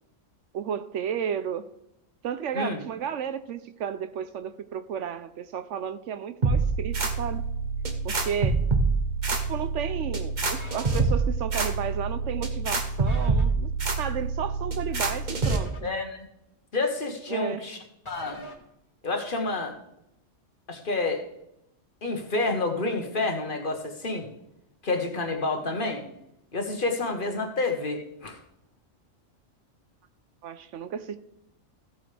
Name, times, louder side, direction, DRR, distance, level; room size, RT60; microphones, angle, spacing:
voice 1, 0.5-1.6 2.2-7.4 8.0-8.6 9.4-13.7 14.0-15.9 17.3-17.6 30.4-31.2, right 8 dB, 70° right, 11 dB, 0.9 m, -33 dB
sound 1, 6.4-15.6, right 4 dB, 40° right, 1.1 m, -26 dB
sound 2, 10.6-11.0 13.1-13.4 15.4-15.9 18.0-18.5, equal, 25° left, 1.4 m, -42 dB
voice 2, 15.8-16.3 16.7-17.8 18.1-18.4 19.0-19.8 20.7-21.2 22.0-24.3 24.8-26.0 26.5-28.4, left 3 dB, 40° left, 4 dB, 1.4 m, -29 dB
15.5 x 8.0 x 3.3 m, 0.82 s
omnidirectional pair, 1.3 m